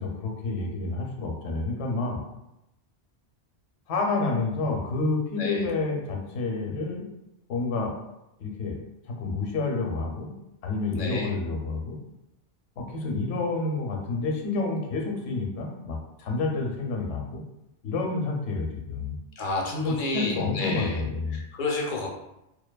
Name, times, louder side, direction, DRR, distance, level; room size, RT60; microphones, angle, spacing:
voice 1, 0.0-2.2 3.9-7.1 7.5-7.9 8.4-8.8 9.1-10.3 10.6-12.0 12.8-17.4 17.8-19.1 19.7-21.4, left 3 dB, 80° left, 0 dB, 0.9 m, -29 dB
voice 2, 11.0-11.3 19.4-21.0 21.5-22.1, left 2 dB, 60° left, -1 dB, 0.6 m, -30 dB
2.6 x 2.2 x 2.2 m, 0.88 s
omnidirectional pair, 1.2 m